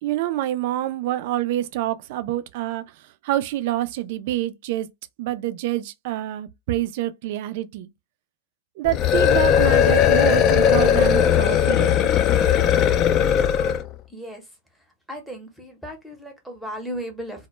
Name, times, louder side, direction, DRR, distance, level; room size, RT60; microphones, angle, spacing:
voice 1, 0.0-4.9 5.2-7.9 8.8-12.1, right 14 dB, 55° right, 0.3 m, -27 dB
sound 1, 8.8-13.9, left 9 dB, 30° left, 0.3 m, -18 dB
voice 2, 14.1-14.4 15.1-17.5, equal, ahead, 0.7 m, -35 dB
2.1 x 2.0 x 3.0 m
supercardioid pair, 145°, 0 cm